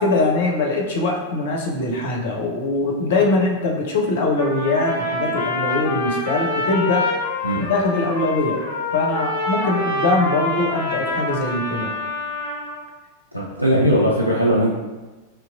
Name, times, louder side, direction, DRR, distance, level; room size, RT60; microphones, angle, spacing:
voice 1, 0.0-7.1 7.5-8.6 8.9-11.9, left 2 dB, 55° left, 1 dB, 0.7 m, -22 dB
Trumpet, 4.4-12.8, left 2 dB, 90° right, 1.0 m, -26 dB
voice 2, 13.3-14.7, equal, 90° left, -3 dB, 0.4 m, -19 dB
4.4 x 2.8 x 2.5 m, 1.2 s
figure-of-eight pair, 90°, 0 cm